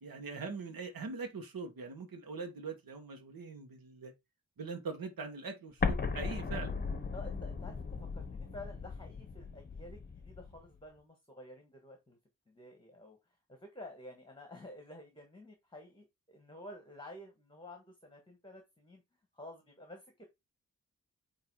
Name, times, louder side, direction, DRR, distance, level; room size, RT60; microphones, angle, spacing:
voice 1, 0.0-4.1 4.6-6.7, right 4 dB, 80° right, 1.6 m, -42 dB
Explosion, 5.8-10.6, left 5 dB, 30° left, 0.9 m, -37 dB
voice 2, 7.1-12.2 12.5-19.0 19.3-20.2, left 1 dB, 15° left, 1.5 m, -51 dB
8.9 x 3.2 x 4.7 m
wide cardioid pair, 160°, 34 cm